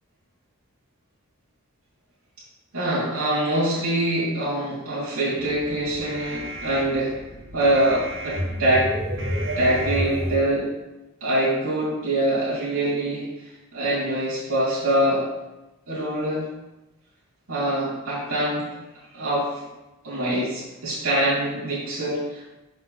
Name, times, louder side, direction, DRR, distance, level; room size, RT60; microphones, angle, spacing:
voice 1, 2.7-7.1 7.5-8.9 9.6-10.7 11.2-13.2 13.7-15.2 15.9-16.5 17.5-18.7 19.1-19.5 20.0-22.4, right 1 dB, 80° right, -9 dB, 2.6 m, -24 dB
sound 1, 5.4-10.4, equal, 60° right, 1.6 m, -31 dB
6.2 x 5.3 x 4.1 m, 1.0 s
head